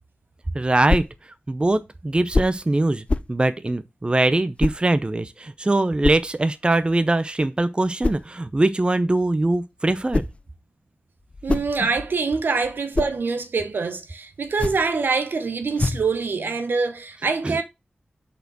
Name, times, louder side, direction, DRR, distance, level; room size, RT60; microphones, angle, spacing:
voice 1, 0.5-1.1 1.5-10.2 17.4-17.6, right 2 dB, 30° right, 0.6 m, -22 dB
sound 1, 0.9-1.2 2.3-2.6 3.1-3.4 4.6-4.8 6.0-6.3 8.0-8.3 9.8-10.4 11.2-12.2 12.6-13.2 14.4-14.9 15.8-16.1, left 3 dB, 35° left, 0.4 m, -26 dB
voice 2, 11.4-17.6, right 4 dB, 75° right, 0.9 m, -25 dB
5.5 x 4.4 x 6.1 m
cardioid pair, 45°, 3 cm